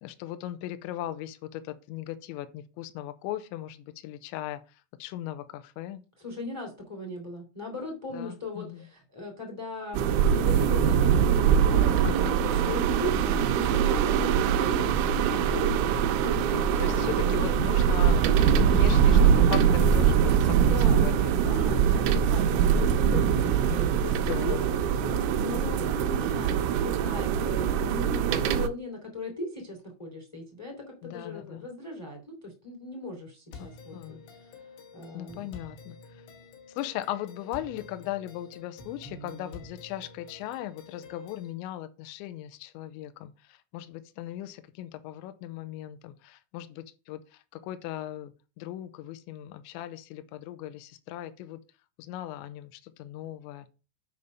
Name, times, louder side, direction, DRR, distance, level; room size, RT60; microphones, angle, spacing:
voice 1, 0.0-4.6 5.0-6.0 8.1-8.8 12.0-12.8 16.5-20.6 20.9-21.3 22.0-22.1 22.4-22.8 24.3-24.7 25.6-25.7 31.0-31.6 33.6-33.7 33.9-34.2 35.1-36.0 36.8-43.3 43.7-47.2 47.5-51.6 52.0-53.7, left 13 dB, 85° left, 2.8 m, -38 dB
voice 2, 6.2-10.0 10.3-12.0 12.4-17.8 20.6-24.6 25.0-30.7 31.0-34.6 34.9-35.5, left 2 dB, 15° left, 0.9 m, -39 dB
sound 1, 9.9-28.7, right 8 dB, 80° right, 3.0 m, -23 dB
sound 2, 33.5-41.5, left 3 dB, 70° left, 3.3 m, -48 dB
8.2 x 5.2 x 5.4 m
omnidirectional pair, 5.8 m